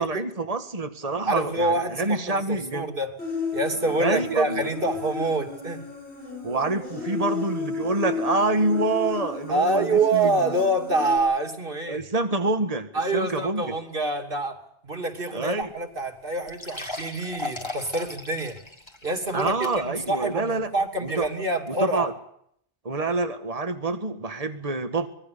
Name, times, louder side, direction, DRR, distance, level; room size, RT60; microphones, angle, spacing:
voice 1, 0.0-2.9 4.0-4.6 6.4-10.3 11.9-13.7 15.3-15.7 19.3-20.7 21.0-21.3 21.8-22.1 22.9-25.1, right 2 dB, 35° right, 8 dB, 1.9 m, -26 dB
voice 2, 1.2-3.2 3.5-5.9 9.5-12.0 12.9-14.6 14.8-18.6 19.0-22.1, right 2 dB, 55° right, 6 dB, 3.3 m, -26 dB
Human voice, 3.2-11.2, left 4 dB, 85° left, 5.8 m, -33 dB
sound 1, 15.6-15.7 16.0-16.1 16.5-20.1 20.5-20.6 21.2-21.3, left 2 dB, 25° left, 3.0 m, -38 dB
25.5 x 21.5 x 6.9 m, 0.70 s
omnidirectional pair, 1.1 m